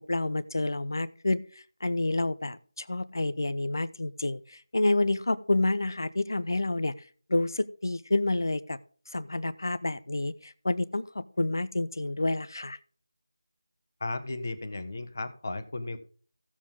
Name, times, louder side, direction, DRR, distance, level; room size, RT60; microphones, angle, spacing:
voice 1, 0.1-1.4 1.8-6.9 7.3-8.8 9.1-12.8, left 2 dB, 65° left, 15 dB, 0.8 m, -29 dB
voice 2, 14.0-16.0, left 2 dB, 40° left, 9 dB, 1.3 m, -35 dB
16.0 x 7.4 x 3.6 m, 0.43 s
figure-of-eight pair, 175°, 2 cm